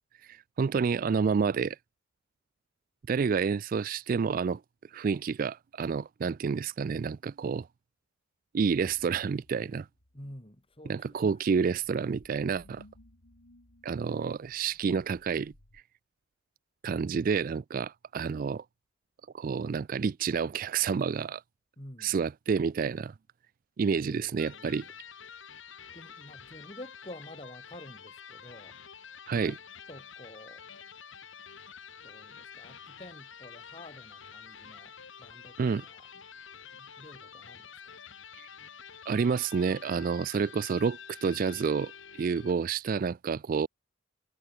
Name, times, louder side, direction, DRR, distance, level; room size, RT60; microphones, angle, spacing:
voice 1, 0.2-1.8 3.1-4.6 4.9-7.7 8.5-9.9 10.9-12.8 13.8-15.5 16.8-18.6 19.3-21.4 22.0-23.1 23.8-24.8 29.3-29.5 35.6-35.8 38.4-38.5 39.1-41.9 42.2-43.7, right 5 dB, 45° right, 0.3 m, -29 dB
sound 1, 8.8-15.8, left 1 dB, 85° left, 3.4 m, -60 dB
voice 2, 10.1-11.4 21.8-22.2 23.9-25.0 25.9-28.8 29.3-29.6 29.9-30.7 32.0-36.2 36.7-38.0, left 1 dB, 30° left, 4.9 m, -49 dB
Electric guitar, 24.3-42.7, left 7 dB, 65° left, 2.1 m, -48 dB
head